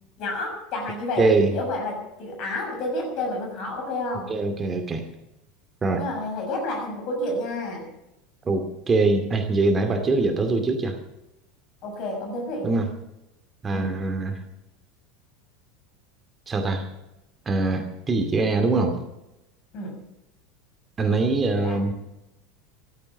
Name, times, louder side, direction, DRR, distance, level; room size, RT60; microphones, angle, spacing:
voice 1, 0.2-1.3 1.5-4.3 6.0-7.9 11.8-12.7 13.7-13.9 19.7-20.0 21.6-21.8, left 2 dB, 45° left, 2 dB, 7.0 m, -30 dB
voice 2, 1.2-1.5 4.3-5.1 5.8-6.0 8.5-11.0 12.6-12.9 13.6-14.4 16.5-16.9 17.5-19.0 21.0-21.9, right 3 dB, 20° right, 5 dB, 2.4 m, -23 dB
15.0 x 13.0 x 7.4 m, 0.90 s
figure-of-eight pair, 75°, 0 cm